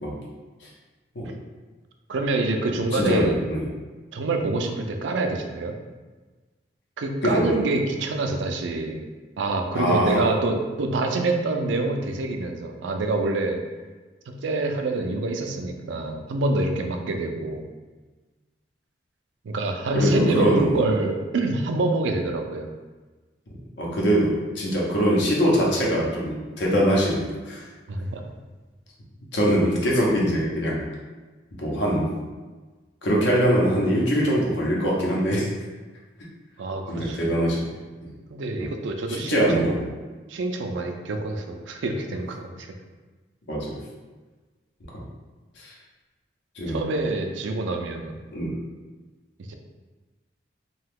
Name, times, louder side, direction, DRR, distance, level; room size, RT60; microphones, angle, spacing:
voice 1, 2.1-3.4 4.1-5.8 7.0-9.0 9.4-13.6 14.3-17.6 19.4-22.7 27.9-28.2 36.6-37.2 38.3-39.8 40.3-42.7 46.7-48.2 49.4-49.5, right 2 dB, 90° right, 4 dB, 0.4 m, -26 dB
voice 2, 2.9-3.7 7.2-7.6 9.7-10.3 19.9-20.8 23.8-27.6 29.3-30.8 31.6-32.1 33.0-35.5 36.9-37.7 38.0-38.1 38.6-38.7 39.1-39.8 43.5-43.8 44.9-45.0 45.6-45.7 46.6-46.8 48.3-48.6, equal, 80° left, -4 dB, 0.8 m, -23 dB
2.7 x 2.3 x 3.4 m, 1.3 s
head